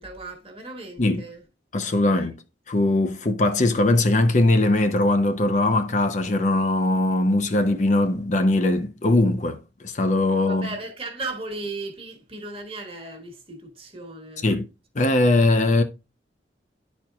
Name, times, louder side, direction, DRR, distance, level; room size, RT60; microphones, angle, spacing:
voice 1, 0.0-1.4 2.0-2.3 10.5-14.5, right 2 dB, 30° right, 1.4 m, -36 dB
voice 2, 1.7-2.3 2.7-10.7 14.4-14.6 15.0-15.8, left 2 dB, 40° left, 0.5 m, -20 dB
11.0 x 4.3 x 2.3 m
head